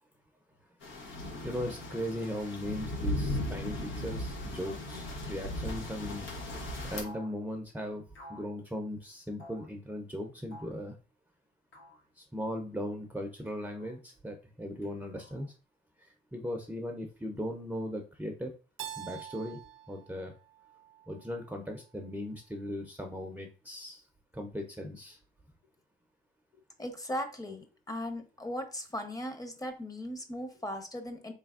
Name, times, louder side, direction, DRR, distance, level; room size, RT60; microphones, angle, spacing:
sound 1, 0.8-7.0, left 1 dB, 90° left, 0.9 m, -37 dB
voice 1, 1.4-6.6 6.9-8.0 8.3-11.0 12.2-15.5 16.0-18.5 19.0-19.6 19.9-20.3 21.1-24.0 24.3-25.2, equal, 10° right, 3 dB, 0.5 m, -38 dB
sound 2, 7.0-7.4 8.1-8.5 9.4-9.7 10.5-10.8 11.7-12.1 13.5-14.0 14.8-15.5, equal, 70° left, 1.6 m, -52 dB
Keyboard (musical), 18.8-21.6, right 10 dB, 75° right, 0.4 m, -46 dB
voice 2, 26.8-31.3, left 1 dB, 20° left, 7 dB, 0.8 m, -38 dB
3.8 x 3.4 x 2.4 m, 0.35 s
cardioid pair, 90°, 20 cm